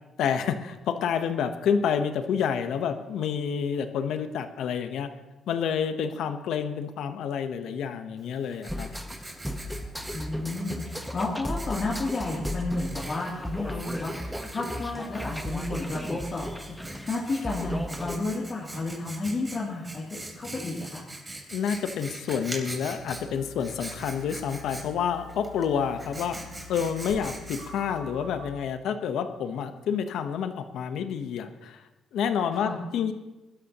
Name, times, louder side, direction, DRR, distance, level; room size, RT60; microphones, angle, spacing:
voice 1, 0.2-5.1 5.5-8.9 21.5-26.4 26.7-31.8 32.1-33.1, left 7 dB, 80° left, 9 dB, 1.0 m, -29 dB
Writing, 8.2-28.0, right 2 dB, 20° right, 3.2 m, -43 dB
sound 1, 8.7-18.2, left 1 dB, ahead, 1.2 m, -36 dB
voice 2, 10.1-21.0 32.5-32.8, left 2 dB, 40° left, -4 dB, 2.9 m, -32 dB
sound 2, 23.0-28.5, left 2 dB, 90° right, 2.8 m, -46 dB
21.5 x 12.5 x 3.0 m, 1.1 s
cardioid pair, 90°, 0 cm